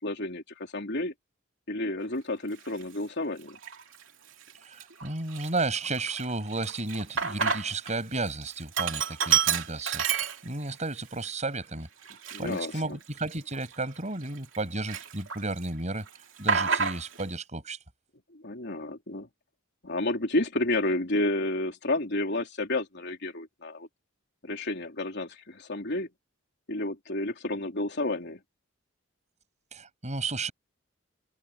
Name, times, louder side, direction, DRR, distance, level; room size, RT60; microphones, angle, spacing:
voice 1, 0.0-1.1 1.7-3.6 12.3-13.0 18.3-19.3 19.8-23.9 24.4-26.1 26.7-28.4, left 2 dB, 60° left, 3.6 m, -31 dB
Sink (filling or washing), 2.7-2.8 3.5-4.0 4.4-4.5 4.8-7.9 8.2-10.8 11.2-11.3 12.0-14.6 14.9-15.7 15.9-17.3, right 7 dB, 70° right, 2.8 m, -29 dB
voice 2, 4.6-10.0 10.4-11.9 12.4-16.1 16.4-17.8 29.7-30.5, right 2 dB, 35° right, 7.2 m, -33 dB
head